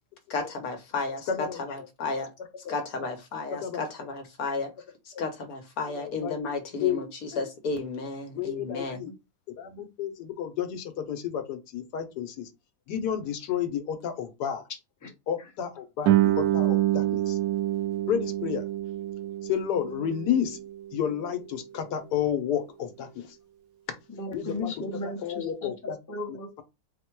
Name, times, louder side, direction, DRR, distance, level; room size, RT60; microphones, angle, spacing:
voice 1, 0.3-2.3 2.7-4.7 5.1-9.0, left 3 dB, 65° left, 1.3 m, -33 dB
voice 2, 1.3-1.8 2.6-3.1 3.5-3.8 5.1-5.2 6.0-6.4 6.8-7.0 7.3-7.5 8.4-9.1 9.6-12.5 12.9-14.7 15.3-17.4 18.1-18.6 19.4-20.6 20.9-23.4 24.3-24.7 25.2-26.0, left 9 dB, 85° left, 1.3 m, -31 dB
Guitar, 16.0-21.4, right 14 dB, 80° right, 1.1 m, -27 dB
voice 3, 24.1-26.6, left 2 dB, 15° left, 0.7 m, -36 dB
4.2 x 2.2 x 4.4 m
omnidirectional pair, 1.7 m